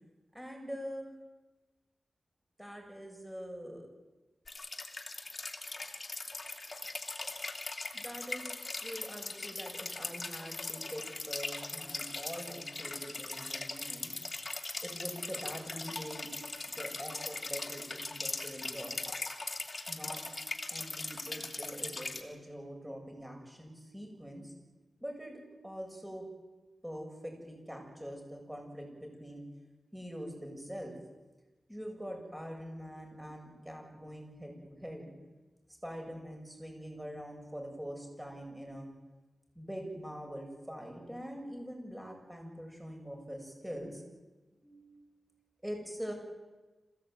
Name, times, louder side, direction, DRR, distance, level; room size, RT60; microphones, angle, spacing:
voice 1, 0.3-1.1 2.6-3.9 7.9-8.5 8.8-14.2 14.8-16.3 16.7-19.0 19.9-20.2 20.7-24.5 25.0-26.3 26.8-29.5 29.9-31.0 31.7-35.1 35.8-38.9 39.5-44.0 44.6-45.2 45.6-46.1, equal, 5° right, 1 dB, 7.7 m, -44 dB
sound 1, 4.5-22.2, left 3 dB, 35° left, 3.0 m, -40 dB
26.5 x 16.5 x 9.3 m, 1.2 s
wide cardioid pair, 85°, 0 cm